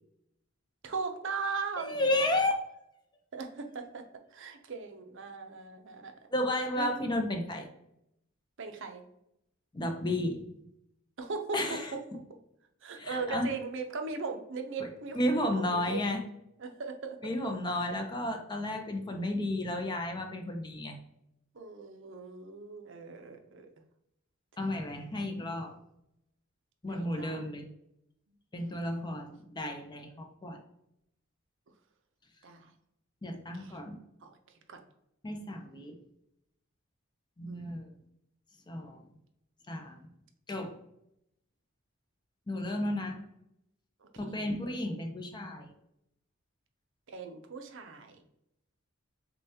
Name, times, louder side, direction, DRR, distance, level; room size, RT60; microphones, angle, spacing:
voice 1, 0.8-2.2 3.3-4.0 4.3-6.1 6.8-6.9 8.6-9.0 11.2-11.6 12.8-16.0 16.6-17.2 17.4-17.5 21.5-23.7 24.6-24.7 26.9-27.4 32.4-32.7 33.5-33.8 34.2-34.3 34.7-34.8 37.5-37.8 44.0-44.4 47.1-48.1, right 4 dB, 60° right, 5 dB, 0.6 m, -39 dB
voice 2, 1.8-2.5 6.3-7.7 9.7-10.5 11.5-11.9 13.0-13.5 14.8-14.9 15.1-16.2 17.2-21.0 24.6-25.8 26.8-27.7 28.5-30.6 33.2-34.0 35.2-36.0 37.4-37.8 38.7-39.0 39.7-40.0 40.5-40.8 42.5-43.2 44.2-45.7, left 1 dB, 20° left, 4 dB, 0.5 m, -32 dB
6.5 x 2.3 x 2.8 m, 0.80 s
head